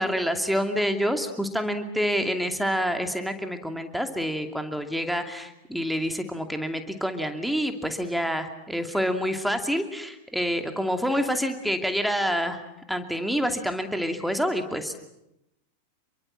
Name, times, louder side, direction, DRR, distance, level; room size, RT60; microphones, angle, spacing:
voice 1, 0.0-12.6 12.9-15.0, equal, ahead, 6 dB, 2.6 m, -27 dB
28.0 x 23.0 x 7.5 m, 0.85 s
figure-of-eight pair, 90°, 0 cm